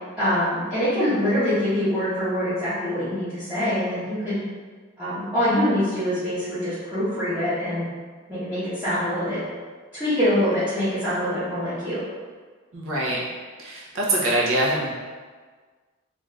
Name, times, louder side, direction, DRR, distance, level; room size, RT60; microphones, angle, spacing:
voice 1, 0.2-4.4 5.0-7.9 8.3-9.4 9.9-12.0, equal, 5° right, -17 dB, 0.8 m, -24 dB
voice 2, 12.7-13.2 13.6-14.9, right 1 dB, 70° right, -4 dB, 0.7 m, -24 dB
2.5 x 2.4 x 3.2 m, 1.5 s
head